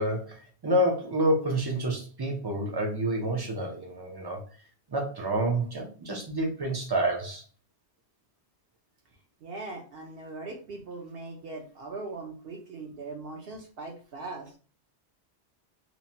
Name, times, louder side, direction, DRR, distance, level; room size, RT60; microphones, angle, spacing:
voice 1, 0.0-4.4 4.9-7.4, right 1 dB, 40° right, 2 dB, 0.3 m, -28 dB
voice 2, 9.4-14.5, right 3 dB, 65° right, 3 dB, 0.8 m, -40 dB
2.9 x 2.1 x 2.7 m, 0.38 s
omnidirectional pair, 1.1 m